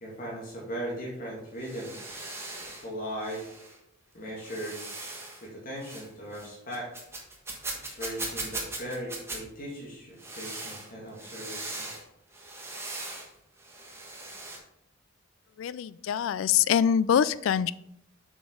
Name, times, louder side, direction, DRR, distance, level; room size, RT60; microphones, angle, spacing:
voice 1, 0.0-1.9 2.8-3.4 4.1-4.8 5.4-6.9 7.8-11.8, equal, 45° left, -4 dB, 2.1 m, -38 dB
sound 1, 1.4-2.9 3.2-3.8 4.4-5.4 5.8-6.1 6.3-9.4 10.2-12.0 12.3-13.3 13.6-14.6, right 2 dB, 15° right, 1.3 m, -39 dB
voice 2, 15.6-17.7, left 8 dB, 80° left, 17 dB, 0.3 m, -24 dB
7.0 x 6.0 x 3.7 m, 0.76 s
head